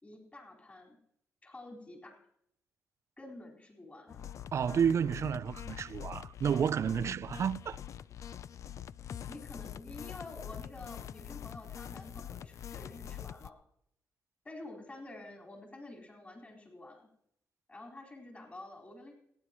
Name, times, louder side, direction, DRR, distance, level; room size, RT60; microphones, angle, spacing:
voice 1, 0.0-1.0 1.4-2.3 3.2-4.2 9.3-13.6 14.4-17.1 17.7-19.1, left 2 dB, 25° left, 4.4 m, -49 dB
sound 1, 4.1-13.5, left 10 dB, 65° left, 0.5 m, -44 dB
voice 2, 4.5-7.8, right 7 dB, 55° right, 0.4 m, -31 dB
27.0 x 10.0 x 3.0 m
supercardioid pair, 65°, 6 cm